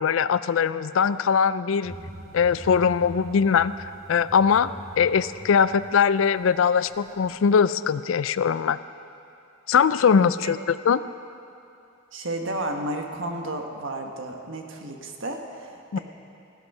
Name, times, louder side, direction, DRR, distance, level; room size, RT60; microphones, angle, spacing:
voice 1, 0.0-1.9 2.3-3.7 4.1-4.7 5.0-8.8 9.7-11.0 15.9-16.0, left 6 dB, 70° left, 15 dB, 0.4 m, -21 dB
sound 1, 1.8-7.3, equal, 20° right, 3.9 m, -43 dB
voice 2, 10.2-10.5 12.1-16.0, right 1 dB, 65° right, 3 dB, 1.4 m, -32 dB
16.0 x 11.5 x 5.5 m, 2.6 s
head